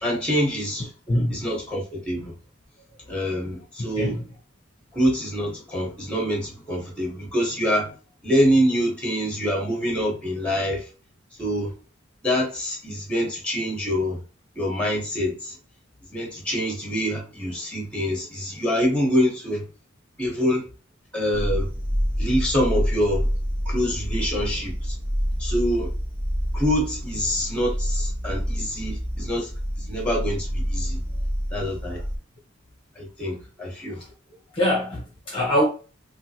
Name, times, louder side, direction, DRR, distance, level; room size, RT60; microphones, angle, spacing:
voice 1, 0.0-0.9 1.3-2.3 3.1-4.2 4.9-7.9 8.2-10.9 11.4-11.7 12.2-14.2 14.6-15.6 16.1-19.7 20.2-20.6 21.1-21.7 22.2-23.3 23.6-24.9 25.4-25.9 26.5-29.5 29.8-31.0 31.5-32.0 33.0-34.0, equal, 5° left, 1.1 m, -25 dB
voice 2, 1.1-1.4 4.0-4.2 31.8-32.0 33.9-34.0 34.5-35.6, equal, 25° left, 0.8 m, -24 dB
sound 1, 21.3-32.2, equal, 40° right, 1.0 m, -27 dB
3.6 x 2.4 x 2.8 m
head